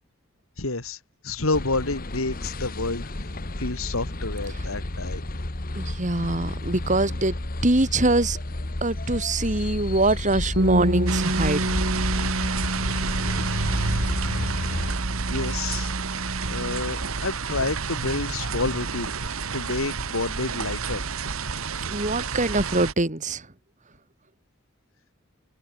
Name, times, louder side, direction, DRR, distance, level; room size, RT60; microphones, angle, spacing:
voice 1, 0.6-1.0 1.2-3.1 3.6-5.2 15.3-16.2 16.5-19.1 19.5-21.0, left 3 dB, 85° left, 2.6 m, -29 dB
sound 1, 1.5-14.9, left 1 dB, 45° left, 1.4 m, -31 dB
voice 2, 5.8-7.3 7.6-8.4 8.8-11.6 21.9-23.4, right 2 dB, 35° right, 2.1 m, -23 dB
Bass guitar, 10.6-16.8, equal, 55° right, 6.3 m, -30 dB
sound 2, 11.1-22.9, right 4 dB, 85° right, 1.5 m, -29 dB
head